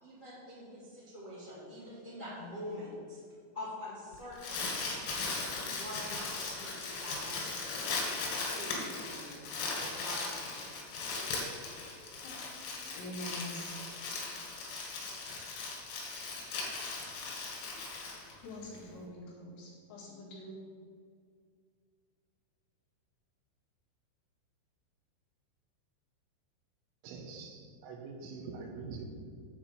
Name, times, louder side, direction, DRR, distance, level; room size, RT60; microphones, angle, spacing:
voice 1, 0.0-3.2 3.5-4.6 5.6-7.7 8.2-9.5 10.0-10.6, left 1 dB, 35° left, -10 dB, 1.3 m, -45 dB
Crumpling crinkling, 4.1-18.8, left 3 dB, 90° left, 4.5 m, -38 dB
voice 2, 13.0-13.7 14.8-15.0 18.4-20.6, left 1 dB, 65° left, -5 dB, 3.8 m, -45 dB
voice 3, 27.0-29.0, right 4 dB, 80° right, 3 dB, 3.2 m, -44 dB
9.0 x 4.5 x 7.1 m, 2.1 s
omnidirectional pair, 5.6 m